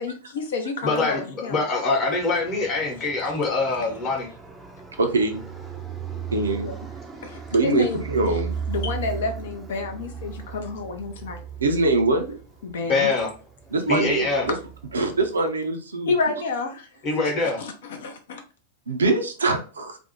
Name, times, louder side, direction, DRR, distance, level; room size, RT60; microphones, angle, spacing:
voice 1, 0.0-1.6 6.6-6.8 7.2-8.0 8.7-11.4 12.6-13.1 16.1-16.9 17.6-18.4, left 4 dB, 60° left, 6 dB, 0.4 m, -29 dB
voice 2, 0.8-4.3 12.8-13.3 13.9-14.5 17.0-17.6, left 3 dB, 35° left, -1 dB, 0.9 m, -24 dB
Fixed-wing aircraft airplane, 2.0-15.5, right 7 dB, 10° right, 0.4 m, -37 dB
voice 3, 5.0-5.4 6.3-6.7 7.5-8.5 11.6-12.4 13.7-14.5 14.9-16.1 18.9-20.0, right 3 dB, 70° right, 5 dB, 0.4 m, -23 dB
2.5 x 2.0 x 2.8 m, 0.36 s
figure-of-eight pair, 90°, 0 cm